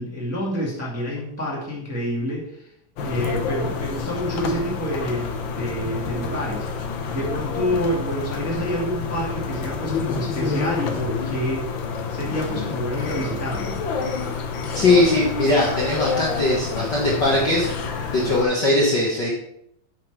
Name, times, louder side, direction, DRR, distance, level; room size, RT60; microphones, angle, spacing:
voice 1, 0.0-2.7 3.0-6.7 7.1-11.7 12.1-13.8, equal, 5° right, -4 dB, 1.5 m, -28 dB
sound 1, 3.0-18.5, left 5 dB, 75° left, 1.1 m, -28 dB
voice 2, 14.7-17.7 18.1-19.3, left 2 dB, 45° left, -4 dB, 1.5 m, -20 dB
8.6 x 5.9 x 4.7 m, 0.75 s
omnidirectional pair, 3.5 m